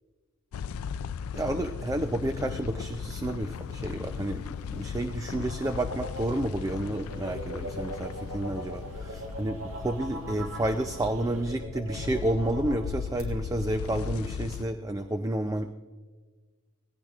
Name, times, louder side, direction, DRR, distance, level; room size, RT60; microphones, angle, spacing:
sound 1, 0.5-14.6, left 6 dB, 75° left, 0.4 m, -37 dB
voice 1, 1.3-15.7, right 1 dB, 15° right, 7 dB, 0.4 m, -30 dB
sound 2, 3.5-11.4, equal, 80° right, 1.4 m, -49 dB
sound 3, 4.7-13.2, right 1 dB, 65° right, 2.9 m, -41 dB
19.5 x 16.5 x 2.4 m, 1.4 s
head